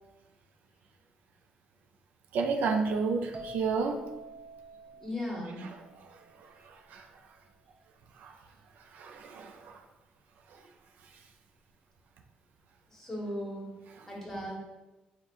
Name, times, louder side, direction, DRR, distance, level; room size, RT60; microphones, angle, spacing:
voice 1, 2.3-4.0 5.6-7.3 8.1-8.5 8.8-9.8 10.5-10.7 11.0-11.2 13.9-14.1, right 4 dB, 80° right, 4 dB, 0.4 m, -33 dB
sound 1, 3.3-7.0, right 2 dB, 40° right, 0.6 m, -48 dB
voice 2, 5.0-5.7 12.9-13.7 14.1-14.6, left 1 dB, 10° left, -2 dB, 1.3 m, -37 dB
3.9 x 2.2 x 4.5 m, 1.1 s
cardioid pair, 105°, 3 cm